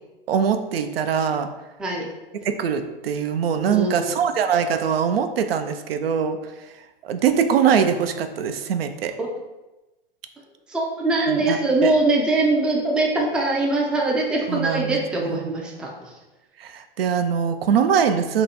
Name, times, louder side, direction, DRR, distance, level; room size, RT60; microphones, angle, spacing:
voice 1, 0.3-1.5 2.4-6.4 7.0-9.1 11.3-11.9 14.5-15.4 16.6-18.4, right 7 dB, 85° right, 8 dB, 0.4 m, -22 dB
voice 2, 3.7-4.1 9.2-9.3 10.7-16.1, right 2 dB, 5° right, -1 dB, 0.3 m, -22 dB
2.8 x 2.2 x 4.0 m, 1.1 s
hypercardioid pair, 115°, 29 cm